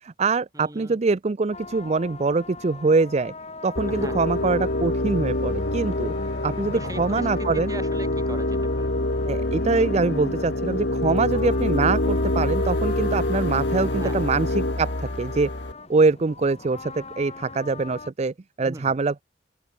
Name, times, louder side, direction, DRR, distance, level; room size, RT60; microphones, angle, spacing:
voice 1, 0.0-3.3 3.6-6.1 6.4-7.7 9.3-15.5 15.9-19.2, right 4 dB, 35° right, 0.5 m, -24 dB
voice 2, 0.5-1.0 3.9-4.3 6.7-8.9 13.9-14.3 18.6-19.0, right 1 dB, 20° right, 6.7 m, -40 dB
sound 1, 1.5-18.1, left 3 dB, 35° left, 4.2 m, -40 dB
sound 2, 3.7-15.7, left 1 dB, 65° left, 2.1 m, -26 dB
open air
head